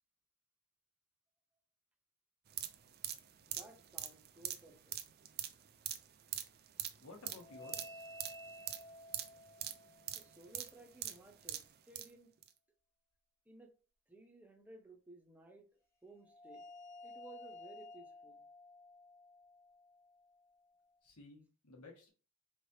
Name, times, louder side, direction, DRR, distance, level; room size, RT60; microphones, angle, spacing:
sound 1, 2.5-12.1 12.4-12.5, right 11 dB, 45° right, 0.4 m, -44 dB
voice 1, 3.5-5.0 10.1-12.3 13.5-13.7 14.1-15.7 16.0-16.6 17.0-18.4, right 3 dB, 5° right, 0.8 m, -57 dB
voice 2, 7.0-8.0 21.0-22.1, left 3 dB, 80° left, 1.3 m, -55 dB
sound 2, 7.3-10.7 16.2-20.9, left 1 dB, 15° left, 1.1 m, -54 dB
4.0 x 3.3 x 2.7 m
head